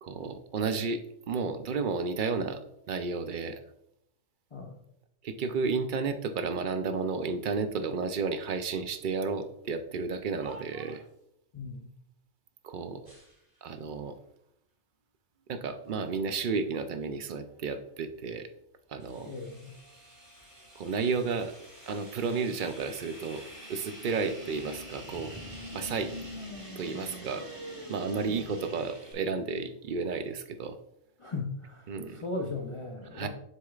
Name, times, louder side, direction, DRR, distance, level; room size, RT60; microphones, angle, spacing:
voice 1, 0.0-2.6 2.9-3.6 5.2-11.0 12.6-13.1 13.6-14.2 15.5-18.5 18.9-19.3 20.8-21.5 21.9-23.4 23.7-25.4 25.7-26.1 26.8-27.5 27.9-30.8 31.9-32.2 33.1-33.3, right 4 dB, 60° right, 9 dB, 0.5 m, -32 dB
sound 1, 10.3-11.3 13.0-13.9 14.7-14.8 15.5-16.2 16.6-18.1 18.5-20.1 20.4-22.5 23.3-23.6, right 2 dB, 80° right, 3.3 m, -56 dB
voice 2, 11.5-11.9 19.3-19.8 31.2-33.3, left 3 dB, 35° left, 1 dB, 0.5 m, -37 dB
sound 2, 19.0-29.1, equal, 20° right, 1.8 m, -45 dB
7.6 x 6.3 x 2.4 m, 0.78 s
omnidirectional pair, 1.3 m